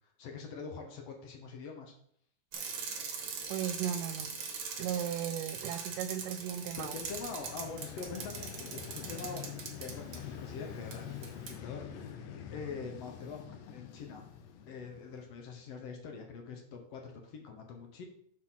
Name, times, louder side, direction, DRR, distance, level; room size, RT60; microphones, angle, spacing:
voice 1, 0.2-1.9 6.8-12.2 12.5-14.2 14.7-18.0, left 5 dB, 65° left, 3 dB, 1.6 m, -44 dB
Bicycle, 2.5-10.2 10.9-11.0 11.2-11.5, right 5 dB, 60° right, 1.6 m, -41 dB
voice 2, 3.5-4.4 4.8-6.9, right 10 dB, 85° right, 10 dB, 2.1 m, -36 dB
Vehicle, 6.7-15.6, left 8 dB, 85° left, 2.4 m, -46 dB
6.4 x 4.3 x 5.6 m, 0.65 s
omnidirectional pair, 3.9 m